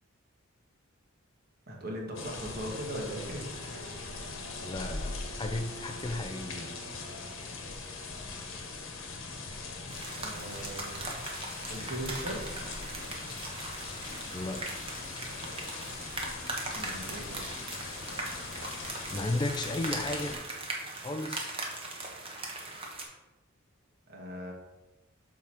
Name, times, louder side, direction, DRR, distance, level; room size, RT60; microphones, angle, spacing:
voice 1, 1.7-3.9 10.2-11.2 11.7-12.4 16.7-17.5 24.1-24.5, equal, 45° right, 0 dB, 1.5 m, -39 dB
sound 1, 2.1-20.4, left 3 dB, 70° left, 1.1 m, -41 dB
Bowed string instrument, 2.6-7.9, right 4 dB, 80° right, 0.5 m, -51 dB
voice 2, 4.6-6.8 14.3-14.7 19.1-20.4 21.0-21.6, left 2 dB, 20° left, 6 dB, 0.4 m, -34 dB
sound 2, 9.9-23.0, right 2 dB, 25° right, 1.1 m, -40 dB
7.1 x 4.8 x 4.4 m, 1.1 s
head